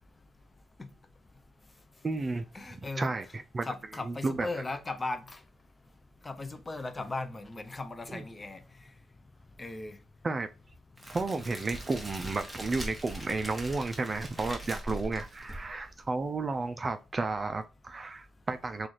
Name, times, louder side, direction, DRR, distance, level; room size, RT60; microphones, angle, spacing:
voice 1, 2.0-2.4 3.0-3.3 3.5-3.7 4.1-4.5 8.1-8.2 10.2-10.5 11.1-18.9, right 3 dB, 30° right, 0.3 m, -32 dB
voice 2, 2.5-3.1 3.6-5.4 6.2-8.6 9.6-10.0, left 2 dB, 25° left, 0.5 m, -37 dB
Crackle, 11.0-16.0, right 1 dB, ahead, 1.0 m, -41 dB
3.1 x 2.4 x 4.0 m
cardioid pair, 90°, 0 cm